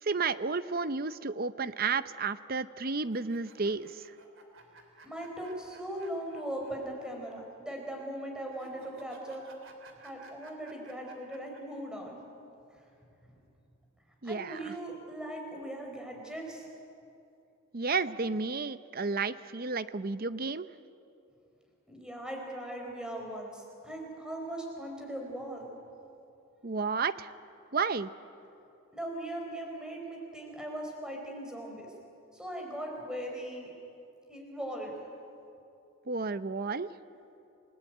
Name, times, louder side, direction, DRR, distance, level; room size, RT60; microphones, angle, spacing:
voice 1, 0.0-4.1 14.2-14.7 17.7-20.7 26.6-27.3 27.7-28.1 36.1-36.9, right 4 dB, 40° right, 13 dB, 0.7 m, -32 dB
sound 1, 3.0-6.7 7.0-7.1 8.5-11.6, right 3 dB, 60° right, 3.3 m, -55 dB
voice 2, 5.0-9.4 10.0-12.2 12.7-12.9 14.2-16.7 21.9-25.7 28.9-31.9 32.3-33.7 34.3-34.9, right 1 dB, 5° right, 1 dB, 4.7 m, -39 dB
28.5 x 19.5 x 9.2 m, 2.7 s
head